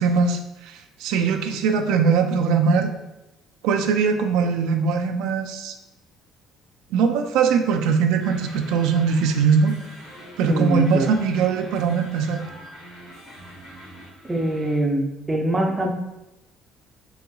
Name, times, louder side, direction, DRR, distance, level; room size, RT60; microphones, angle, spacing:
voice 1, 0.0-2.9 3.6-5.7 6.9-9.7 10.4-12.4, right 5 dB, 85° right, 5 dB, 0.3 m, -21 dB
sound 1, 8.2-14.8, equal, 75° left, 1.4 m, -43 dB
voice 2, 10.4-11.1 14.3-15.9, right 1 dB, 15° right, 2 dB, 0.4 m, -23 dB
4.0 x 2.8 x 2.3 m, 0.94 s
cardioid pair, 145°, 0 cm